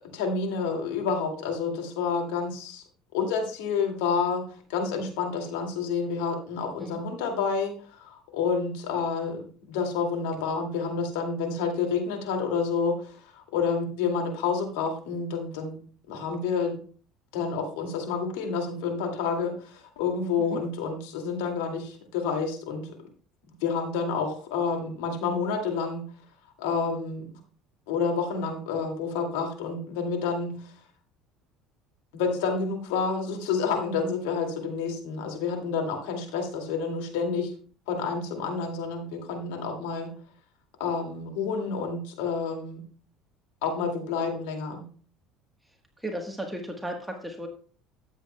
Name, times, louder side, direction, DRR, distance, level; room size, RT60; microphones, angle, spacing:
voice 1, 0.1-2.8 3.1-4.4 4.7-15.8 16.1-16.8 17.3-22.9 23.6-26.0 26.6-27.3 27.9-30.7 32.1-37.5 37.9-40.1 40.8-42.8 43.6-44.8, left 5 dB, 90° left, 3 dB, 2.2 m, -29 dB
voice 2, 46.0-47.5, right 1 dB, 5° right, 2 dB, 1.2 m, -35 dB
13.0 x 8.1 x 2.2 m, 0.43 s
supercardioid pair, 110°, 0 cm